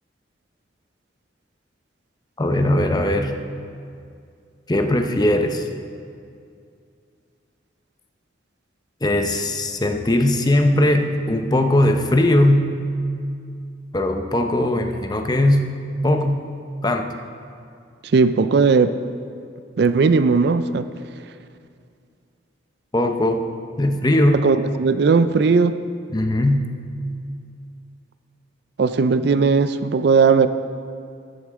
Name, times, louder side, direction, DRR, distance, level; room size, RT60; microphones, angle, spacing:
voice 1, 2.4-3.3 4.7-5.6 9.0-12.6 13.9-15.6 16.0-16.4 16.8-17.1 22.9-23.4 23.8-24.4 26.1-26.6, left 1 dB, 20° left, 5 dB, 0.7 m, -19 dB
voice 2, 18.1-18.9 19.8-20.9 24.4-25.7 28.8-30.5, right 4 dB, 60° right, 12 dB, 0.4 m, -17 dB
13.5 x 11.0 x 3.7 m, 2.4 s
head